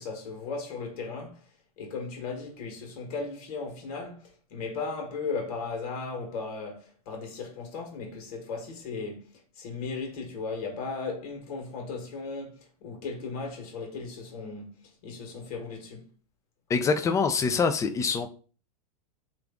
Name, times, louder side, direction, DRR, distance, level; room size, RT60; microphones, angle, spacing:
voice 1, 0.0-1.5 1.8-16.1, left 4 dB, 65° left, 1.3 m, -36 dB
voice 2, 16.7-18.3, left 5 dB, 15° left, 0.4 m, -25 dB
3.2 x 2.5 x 3.5 m
hypercardioid pair, 125°, 20 cm